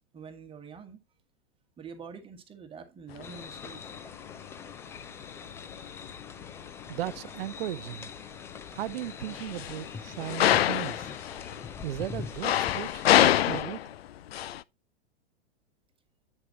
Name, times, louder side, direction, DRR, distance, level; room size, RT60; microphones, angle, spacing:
voice 1, 0.1-1.0 1.8-3.9, right 6 dB, 15° right, 1.5 m, -46 dB
sound 1, 3.1-14.6, left 12 dB, 70° left, 0.5 m, -28 dB
sound 2, 3.2-13.6, left 6 dB, 10° left, 0.3 m, -43 dB
voice 2, 6.9-8.1 8.7-11.1 11.8-13.8, right 13 dB, 65° right, 0.6 m, -36 dB
9.2 x 6.7 x 2.9 m
hypercardioid pair, 110°, 32 cm